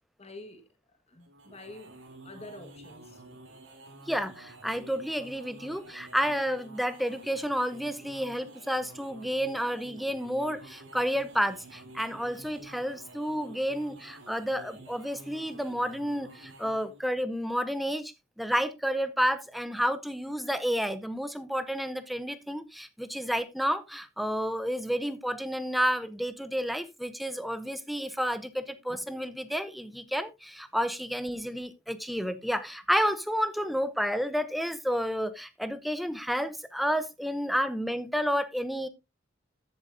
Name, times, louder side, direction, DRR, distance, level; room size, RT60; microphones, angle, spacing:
voice 1, 0.2-0.7 1.1-2.0 2.2-3.2, left 2 dB, 35° left, 1.5 m, -47 dB
sound 1, 1.2-17.0, right 2 dB, 75° right, 3.1 m, -50 dB
voice 2, 4.1-38.9, equal, ahead, 0.7 m, -30 dB
14.0 x 7.8 x 2.6 m
head